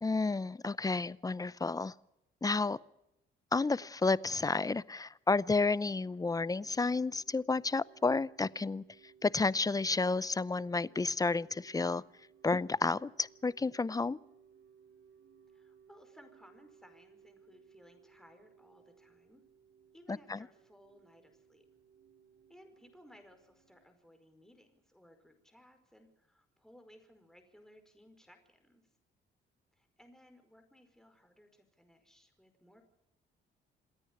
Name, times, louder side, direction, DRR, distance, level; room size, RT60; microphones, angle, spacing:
voice 1, 0.0-1.9 2.4-2.8 3.5-8.8 9.2-12.0 12.4-14.2 20.1-20.4, left 3 dB, 20° left, 20 dB, 0.6 m, -31 dB
sound 1, 5.4-23.9, right 7 dB, 80° right, 4.8 m, -63 dB
voice 2, 15.5-19.4 19.9-21.6 22.5-28.8 29.7-32.8, equal, ahead, 6 dB, 5.1 m, -61 dB
27.5 x 9.9 x 9.9 m, 0.86 s
cardioid pair, 90°, 20 cm